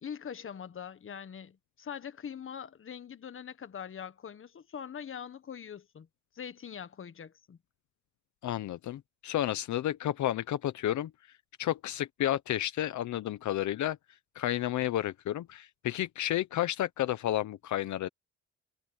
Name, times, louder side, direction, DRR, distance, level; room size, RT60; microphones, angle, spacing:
voice 1, 0.0-6.1 6.3-7.6, left 8 dB, 45° left, 1.5 m, -43 dB
voice 2, 8.4-11.1 11.6-14.0 14.3-18.1, left 13 dB, 70° left, 1.0 m, -31 dB
cardioid pair, 90°, 30 cm